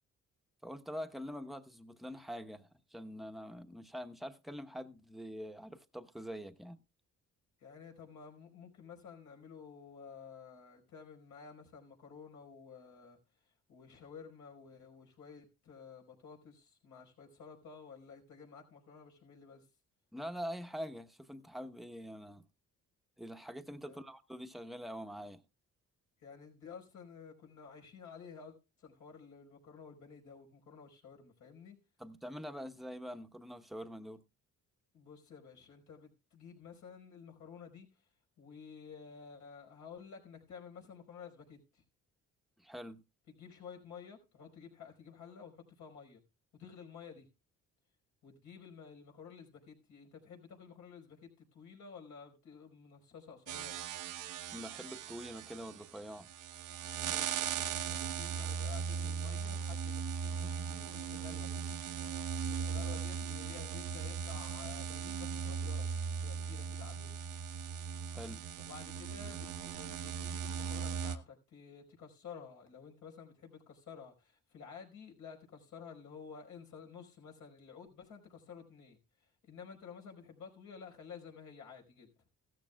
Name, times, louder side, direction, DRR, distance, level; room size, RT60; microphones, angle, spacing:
voice 1, 0.6-6.8 20.1-22.4 23.2-25.4 32.0-34.2 42.6-43.0 54.5-56.3 68.1-68.4, equal, ahead, 1.0 m, -45 dB
voice 2, 7.6-13.2 13.7-19.7 23.8-24.0 26.2-31.8 34.9-37.9 38.4-41.8 43.3-46.2 46.5-47.3 48.2-53.8 57.1-61.7 62.4-67.4 68.6-79.0 79.4-82.2, left 6 dB, 75° left, 4.8 m, -52 dB
sound 1, 53.5-71.2, right 7 dB, 85° right, 1.0 m, -38 dB
15.5 x 13.5 x 2.3 m
cardioid pair, 90°, 30 cm